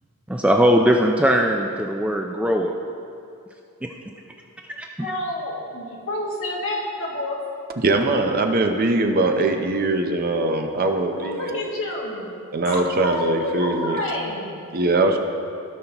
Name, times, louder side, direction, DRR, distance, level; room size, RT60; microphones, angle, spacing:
voice 1, 0.3-2.7 4.8-5.1, equal, 5° right, 1 dB, 0.3 m, -20 dB
voice 2, 5.0-7.4 11.2-12.3 12.7-14.7, left 1 dB, 60° left, -3 dB, 1.7 m, -29 dB
voice 3, 7.8-11.6 12.5-14.0 14.7-15.2, right 2 dB, 45° right, 5 dB, 0.6 m, -21 dB
16.0 x 5.6 x 2.9 m, 2.6 s
head